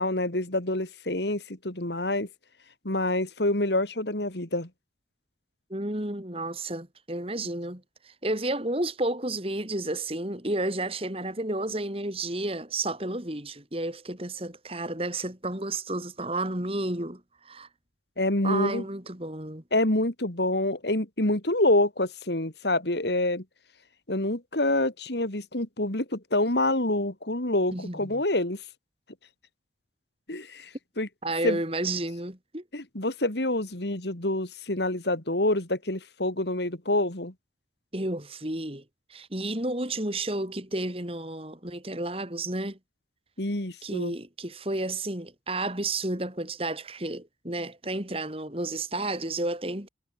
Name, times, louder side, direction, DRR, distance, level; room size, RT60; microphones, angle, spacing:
voice 1, 0.0-2.3 2.8-4.7 18.2-18.8 19.7-23.4 24.1-28.6 30.3-30.7 31.0-31.1 31.4-31.6 32.7-37.3 43.4-44.1, left 1 dB, 70° left, 3.2 m, -27 dB
voice 2, 5.7-17.7 18.4-19.6 27.7-28.2 31.2-32.6 37.9-38.8 39.1-42.8 43.8-49.9, right 2 dB, 30° right, 3.4 m, -31 dB
head